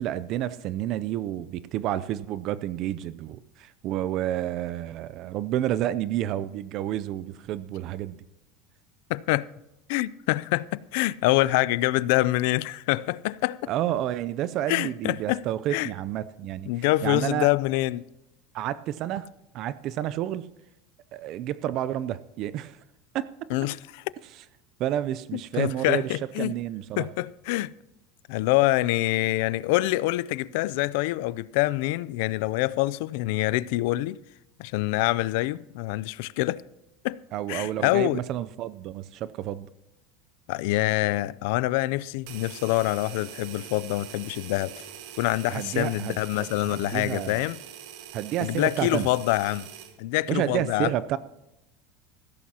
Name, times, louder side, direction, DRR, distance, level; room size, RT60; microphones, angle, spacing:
voice 1, 0.0-8.2 13.7-16.7 17.0-17.5 18.5-19.3 19.5-20.5 21.1-22.8 23.1-23.5 24.8-27.1 37.3-39.7 45.5-47.4 48.1-49.1 50.3-51.2, right 12 dB, 45° right, 0.5 m, -30 dB
voice 2, 9.1-9.5 9.9-13.7 14.7-15.4 15.7-15.9 16.7-18.0 23.5-24.0 25.3-26.5 27.0-27.7 28.3-34.2 34.6-36.6 37.0-37.2 37.5-38.2 40.5-44.8 45.2-47.6 48.4-49.6 50.0-50.9, left 18 dB, 70° left, 0.4 m, -25 dB
sound 1, 42.3-50.0, right 10 dB, 65° right, 1.5 m, -43 dB
16.0 x 14.0 x 2.9 m
supercardioid pair, 140°, 0 cm